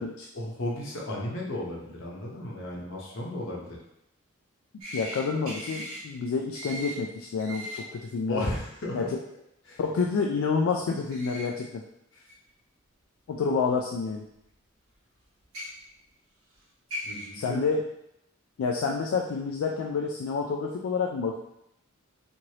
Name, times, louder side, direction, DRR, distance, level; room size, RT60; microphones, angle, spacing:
voice 1, 0.3-3.8 8.3-9.1 9.6-9.8 12.1-12.2 17.0-17.6, left 1 dB, 60° left, -3 dB, 0.8 m, -34 dB
sound 1, 4.8-5.2 5.5-6.0 6.5-7.0 7.4-7.8 11.1-11.5 12.3-12.4 13.6-13.7 15.4-15.7 16.5-16.6 16.9-17.3, equal, 80° right, 0.9 m, -37 dB
voice 2, 4.9-8.5 8.9-9.1 9.8-11.8 13.3-14.2 17.3-17.8 18.6-21.4, left 5 dB, 75° left, 0 dB, 0.3 m, -28 dB
3.1 x 2.6 x 2.8 m, 0.80 s
head